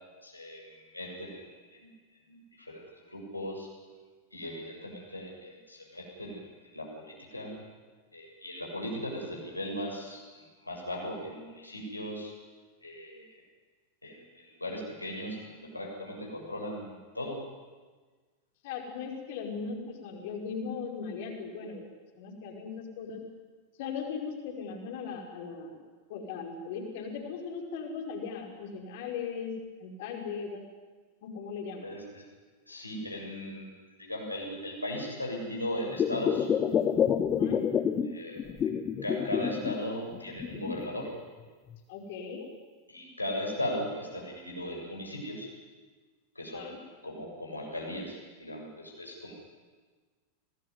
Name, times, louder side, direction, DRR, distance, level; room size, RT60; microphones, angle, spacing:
voice 1, 0.2-3.7 4.3-7.7 8.1-12.3 12.8-13.4 14.0-17.4 31.8-32.2 32.7-33.7 34.0-36.5 38.0-38.7 39.0-41.1 42.9-45.5 46.4-46.7 47.0-49.3, left 1 dB, 85° left, 0 dB, 7.3 m, -38 dB
voice 2, 18.6-21.9 22.2-23.2 23.8-25.8 26.1-29.5 29.8-30.6 31.2-31.9 37.3-37.6 41.9-42.5 46.5-46.8, left 5 dB, 50° left, 3 dB, 5.3 m, -38 dB
sound 1, 35.9-38.1 38.4-39.8 40.1-41.1 41.7-41.8, left 8 dB, 25° left, 1.5 m, -28 dB
24.5 x 19.0 x 9.8 m, 1.4 s
figure-of-eight pair, 90°, 0 cm